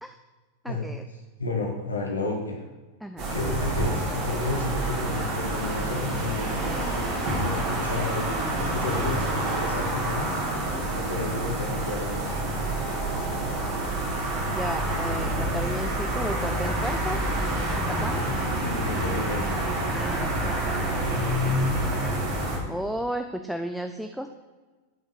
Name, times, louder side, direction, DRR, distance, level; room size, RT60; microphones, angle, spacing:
voice 1, 0.6-1.0 3.0-3.3 14.5-17.2 17.7-18.3 19.9-21.2 22.7-24.3, equal, ahead, 7 dB, 0.3 m, -34 dB
voice 2, 1.4-2.6 3.3-6.6 7.4-8.2 8.5-10.4 10.9-12.4 18.6-19.6, left 2 dB, 75° left, 0 dB, 1.1 m, -32 dB
sound 1, 3.2-22.6, right 1 dB, 40° right, 1.9 m, -27 dB
9.4 x 5.3 x 4.0 m, 1.3 s
figure-of-eight pair, 90°, 0 cm